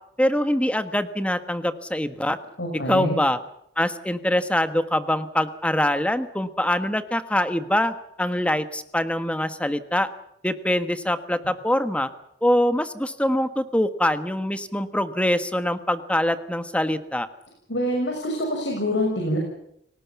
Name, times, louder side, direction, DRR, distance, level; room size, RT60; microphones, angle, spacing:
voice 1, 0.2-2.4 2.9-3.4 3.8-10.1 10.4-12.1 12.4-17.3, left 1 dB, 5° left, 11 dB, 1.4 m, -24 dB
voice 2, 2.6-3.2 17.7-19.4, left 1 dB, 80° left, 0 dB, 6.2 m, -25 dB
29.0 x 18.5 x 7.2 m, 0.76 s
head